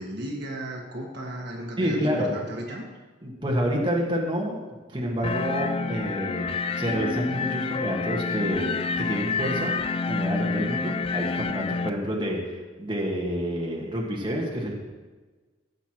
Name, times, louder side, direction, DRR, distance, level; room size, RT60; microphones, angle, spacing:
voice 1, 0.0-2.8, right 1 dB, 55° right, 0 dB, 1.6 m, -35 dB
voice 2, 1.8-2.3 3.2-4.6 4.9-6.5 6.8-9.7 10.0-14.7, equal, 25° right, -2 dB, 1.6 m, -28 dB
sound 1, 5.2-11.9, left 4 dB, 30° left, 0.3 m, -28 dB
15.5 x 8.0 x 3.0 m, 1.3 s
head